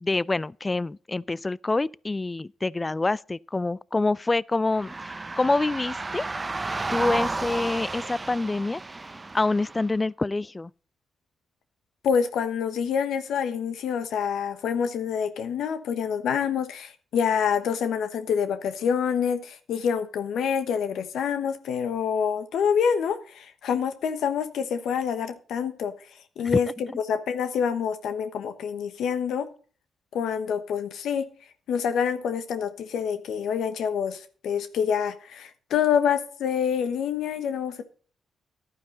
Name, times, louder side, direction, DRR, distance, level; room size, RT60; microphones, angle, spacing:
voice 1, 0.0-6.2 6.9-8.8 9.3-10.7 26.4-26.5, left 2 dB, 25° left, 0.4 m, -26 dB
sound 1, 4.7-9.9, right 3 dB, 30° right, 0.8 m, -32 dB
voice 2, 12.0-25.9 26.4-29.5 30.1-31.3 31.7-37.8, left 7 dB, 80° left, 1.1 m, -27 dB
11.5 x 9.4 x 3.9 m
supercardioid pair, 60°, 0 cm